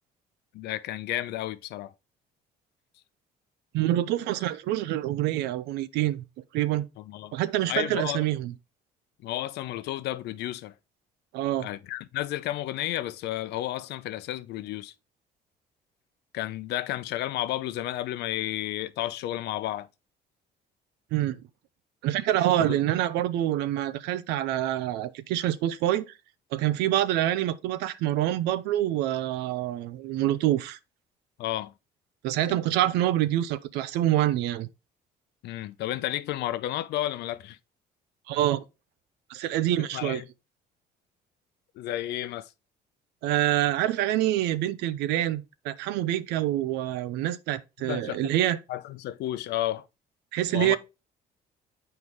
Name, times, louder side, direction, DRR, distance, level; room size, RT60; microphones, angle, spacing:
voice 1, 0.5-1.9 7.0-7.3 7.7-8.2 9.2-10.7 11.6-14.9 16.3-19.9 22.6-22.8 31.4-31.7 35.4-37.6 39.8-40.3 41.8-42.5 47.9-48.2 48.7-49.8 50.5-50.8, left 14 dB, 80° left, 0.7 m, -32 dB
voice 2, 3.7-6.2 6.5-6.9 7.3-8.5 11.3-11.7 21.1-21.4 22.0-26.0 26.5-30.8 32.2-34.7 38.3-38.6 39.3-40.2 43.2-48.6 50.3-50.8, right 13 dB, 90° right, 0.6 m, -26 dB
8.0 x 4.5 x 3.5 m
cardioid pair, 110°, 17 cm